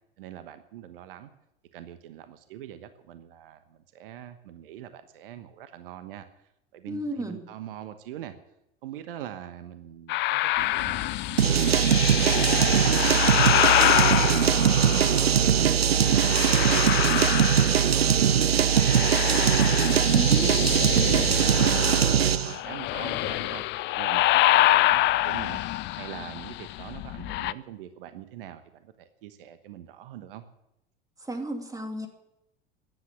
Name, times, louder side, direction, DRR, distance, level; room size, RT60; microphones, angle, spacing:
voice 1, 0.2-1.3 1.7-6.4 6.7-8.3 8.8-13.4 13.6-15.7 16.0-19.7 20.3-23.6 24.0-25.6 26.0-30.4, right 11 dB, 65° right, 10 dB, 1.2 m, -43 dB
voice 2, 6.9-7.4 20.1-20.5 31.2-32.1, right 1 dB, 10° right, 5 dB, 2.6 m, -32 dB
sound 1, 10.1-15.4 15.9-18.2 18.4-27.5, left 17 dB, 40° left, 0.5 m, -26 dB
sound 2, 11.4-22.5, right 8 dB, 85° right, 0.5 m, -21 dB
15.5 x 10.5 x 7.2 m, 0.85 s
figure-of-eight pair, 80°, 30 cm